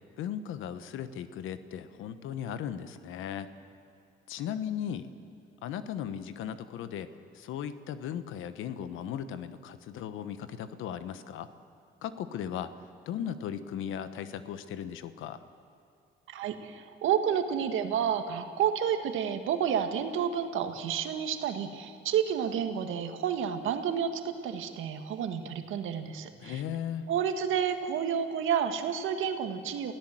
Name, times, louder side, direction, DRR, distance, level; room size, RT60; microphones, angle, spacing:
voice 1, 0.2-3.5 4.3-5.1 5.6-7.1 7.3-11.5 12.0-12.7 13.1-15.4 26.4-27.1, left 9 dB, 85° left, 12 dB, 1.2 m, -37 dB
voice 2, 16.3-26.6 27.1-29.9, right 8 dB, 85° right, 7 dB, 1.7 m, -30 dB
28.5 x 16.5 x 7.7 m, 2.5 s
cardioid pair, 90°, 20 cm